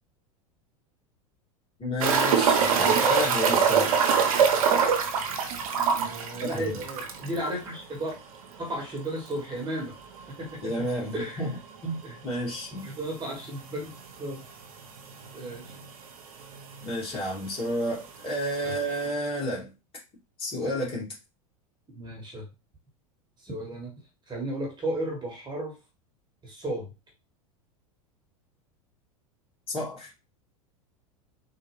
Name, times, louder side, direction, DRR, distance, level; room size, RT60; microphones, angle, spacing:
voice 1, 1.8-3.9 6.4-6.8 10.6-11.5 11.8-12.8 16.8-19.7 20.4-21.1 29.7-30.1, equal, 30° left, -4 dB, 2.1 m, -31 dB
sound 1, 2.0-7.4 7.7-7.8 8.1-8.2 11.0-11.1 12.8-12.9 13.7-13.8 14.0-14.1 15.0-15.1 15.2-15.9 16.8-16.9, right 6 dB, 70° right, 0.7 m, -23 dB
voice 2, 2.7-3.1 6.0-8.1 8.6-9.9 10.4-10.7 11.1-11.4 12.0-12.2 12.8-13.9 14.2-14.4 15.3-15.7 18.6-18.7 21.9-22.5 23.4-23.9 24.3-25.7 26.4-26.9, right 1 dB, 25° right, 0 dB, 1.2 m, -34 dB
3.6 x 2.4 x 3.0 m, 0.28 s
hypercardioid pair, 95°, 19 cm